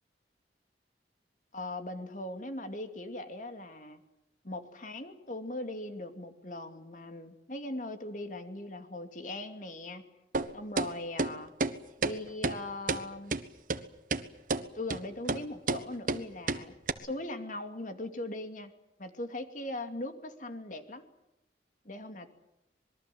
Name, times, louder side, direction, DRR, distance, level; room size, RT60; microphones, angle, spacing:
voice 1, 1.5-4.0 4.4-10.1 10.5-11.5 12.0-13.4 14.7-18.7 19.0-21.0 21.8-22.3, left 1 dB, 45° left, 7 dB, 2.6 m, -40 dB
sound 1, 10.3-10.5 10.8-10.9 11.2-11.3 11.6-11.7 12.0-12.1 12.4-12.6 12.9-13.0 13.3-13.4 13.7-13.8 14.1-14.2 14.5-14.6 14.9-15.0 15.3-15.4 15.7-15.8 16.1-16.2 16.5-16.6 16.9-17.0, right 3 dB, 50° right, 1.4 m, -29 dB
26.0 x 22.0 x 7.8 m, 0.88 s
head